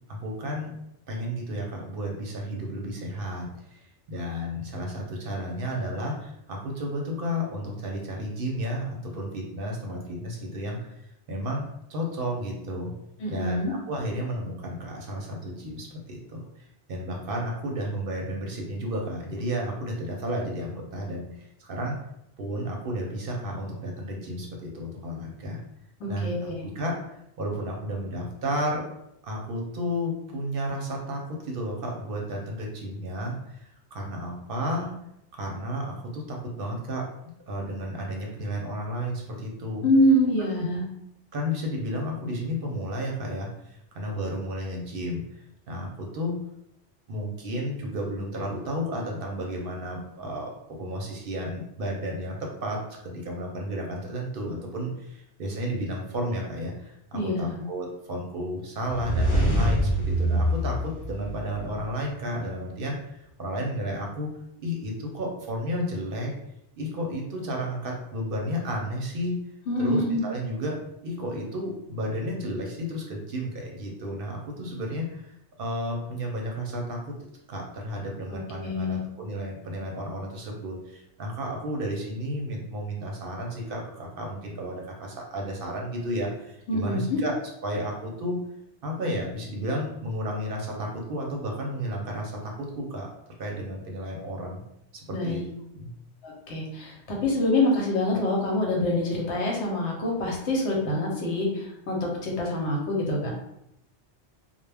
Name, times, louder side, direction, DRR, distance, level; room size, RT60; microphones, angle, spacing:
voice 1, 0.1-0.7 1.1-3.8 4.1-10.9 11.3-11.6 11.9-12.9 13.3-21.9 22.4-25.6 26.1-27.0 27.4-28.9 29.2-34.9 35.3-37.1 37.5-39.9 40.4-40.6 41.3-46.4 47.1-64.3 64.6-66.3 66.8-69.4 69.8-70.8 71.0-75.3 75.6-77.1 77.5-88.4 88.8-93.1 93.4-94.6 94.9-95.4 95.7-95.9, equal, 60° right, 0 dB, 0.7 m, -32 dB
voice 2, 13.2-13.7 26.0-26.6 39.8-40.8 57.1-57.6 69.7-70.2 78.5-79.0 86.7-87.2 95.1-95.5 96.2-97.0 97.2-103.3, left 1 dB, 80° left, -1 dB, 1.0 m, -25 dB
sound 1, 58.8-61.8, equal, 50° left, 0.9 m, -25 dB
2.2 x 2.1 x 3.3 m, 0.79 s
omnidirectional pair, 1.2 m